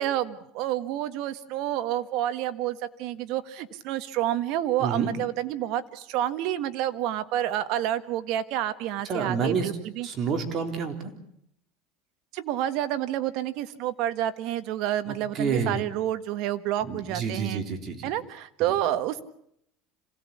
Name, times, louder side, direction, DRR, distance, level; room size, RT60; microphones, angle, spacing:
voice 1, 0.0-10.1 12.3-17.6 18.0-19.2, right 12 dB, 60° right, 11 dB, 1.6 m, -29 dB
voice 2, 4.8-5.1 9.0-9.7 10.0-11.1 15.1-15.9 16.8-18.1 18.6-18.7, right 5 dB, 40° right, 5 dB, 3.8 m, -29 dB
27.0 x 17.0 x 8.5 m, 0.73 s
supercardioid pair, 135°, 0 cm